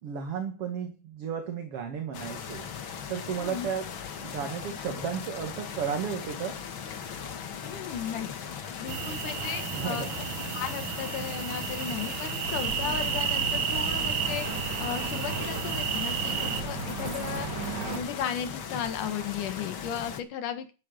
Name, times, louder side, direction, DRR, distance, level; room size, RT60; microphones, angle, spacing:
voice 1, 0.0-2.7 3.1-3.9 4.2-6.6 9.7-10.1, right 7 dB, 50° right, 5 dB, 2.6 m, -33 dB
sound 1, 2.1-20.2, left 7 dB, 50° left, 1.8 m, -39 dB
voice 2, 7.6-8.3 8.8-10.1 10.5-20.7, left 8 dB, 85° left, 9 dB, 3.1 m, -35 dB
sound 2, 8.9-16.6, right 8 dB, 85° right, 3.3 m, -32 dB
sound 3, 12.4-18.0, right 3 dB, 35° right, 3.5 m, -36 dB
12.0 x 12.0 x 5.3 m, 0.32 s
omnidirectional pair, 3.5 m